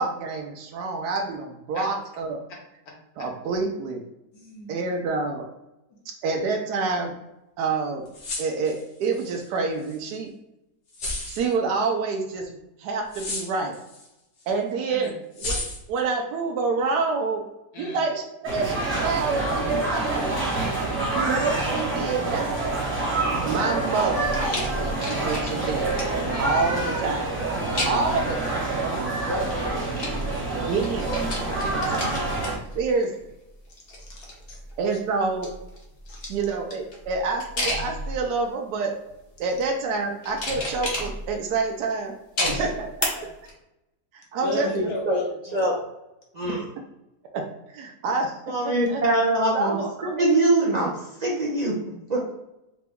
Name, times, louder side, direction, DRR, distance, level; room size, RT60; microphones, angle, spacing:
voice 1, 0.0-2.4 3.2-4.0 4.7-5.5 6.2-7.1 7.6-8.0 8.4-10.3 11.3-13.8 14.5-15.1 15.4-15.6 15.9-17.5 17.8-20.3 21.1-22.5 23.4-24.4 24.8-25.9 26.4-27.4 27.9-28.7 30.6-31.1 31.4-32.3 32.7-33.3 34.8-35.5 36.3-38.9 39.4-42.1 42.5-42.9 44.1-44.7 47.3-47.4 47.7-48.3 48.6-49.0 49.5-50.2, right 4 dB, 80° right, 2 dB, 1.2 m, -27 dB
voice 2, 4.3-4.8 15.0-15.1 17.7-18.0 20.5-21.2 29.2-29.8 34.1-34.6 36.1-36.2 42.4-42.6 43.2-43.3 44.4-45.6, left 2 dB, 65° left, -1 dB, 1.5 m, -35 dB
sound 1, 8.1-9.4 9.8-10.0 10.9-11.5 13.1-14.1 14.4-14.5 15.3-16.0, left 2 dB, 85° left, 1.7 m, -32 dB
sound 2, 18.4-32.6, right 2 dB, 10° right, 0.7 m, -27 dB
sound 3, 24.2-26.3 27.7-28.2 29.3-30.6 30.8-33.3 33.7-34.7 35.2-38.4 39.1-39.5 40.2-41.5 42.4-43.0 43.5-43.6, left 1 dB, 40° left, 1.0 m, -32 dB
voice 3, 46.3-46.6 48.5-49.8 50.2-51.7 52.1-52.3, right 2 dB, 50° right, -4 dB, 0.5 m, -23 dB
4.9 x 2.2 x 3.5 m, 0.89 s
omnidirectional pair, 1.7 m